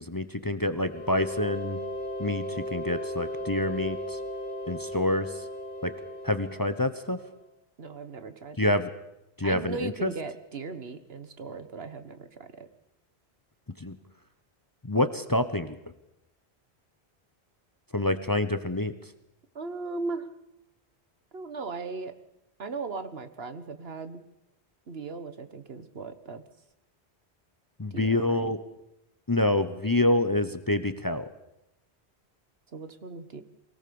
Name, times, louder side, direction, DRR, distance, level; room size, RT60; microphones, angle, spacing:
voice 1, 0.0-1.8 2.2-4.2 4.7-5.3 5.8-5.9 6.2-7.2 8.6-8.9 9.4-10.1 13.8-14.0 14.8-15.8 17.9-18.9 27.8-28.6 29.3-31.3, left 1 dB, 20° left, 11 dB, 0.9 m, -27 dB
sound 1, 0.8-7.4, equal, 50° left, 1.5 m, -36 dB
voice 2, 7.8-8.8 9.4-12.7 19.5-20.3 21.3-22.1 22.6-24.2 24.9-26.4 27.9-28.5 32.7-33.4, right 4 dB, 65° right, 11 dB, 1.5 m, -38 dB
23.5 x 18.0 x 7.0 m, 0.89 s
omnidirectional pair, 1.1 m